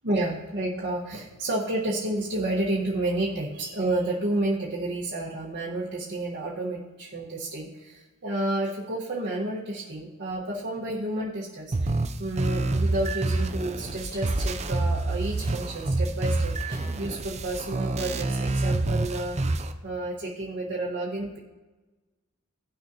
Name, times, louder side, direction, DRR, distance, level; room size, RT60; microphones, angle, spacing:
voice 1, 0.0-19.4 19.8-21.4, right 1 dB, 50° right, -7 dB, 1.5 m, -30 dB
sound 1, 11.7-19.7, right 2 dB, 30° right, 0.5 m, -27 dB
sound 2, 13.5-18.6, equal, 20° left, 3.6 m, -46 dB
17.0 x 6.4 x 2.9 m, 1.2 s
head